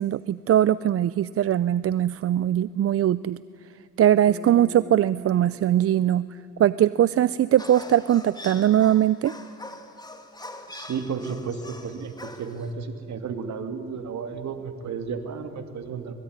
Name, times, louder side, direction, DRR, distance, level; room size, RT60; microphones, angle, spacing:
voice 1, 0.0-3.4 4.0-6.3 6.6-9.3, right 11 dB, 50° right, 17 dB, 0.5 m, -21 dB
Bass guitar, 4.3-8.7, right 1 dB, 5° right, 1.4 m, -46 dB
sound 1, 7.6-12.7, left 2 dB, 15° left, 2.4 m, -43 dB
voice 2, 10.7-16.1, right 5 dB, 65° right, 7 dB, 2.7 m, -33 dB
25.5 x 21.0 x 9.7 m, 2.6 s
cardioid pair, 90°, 30 cm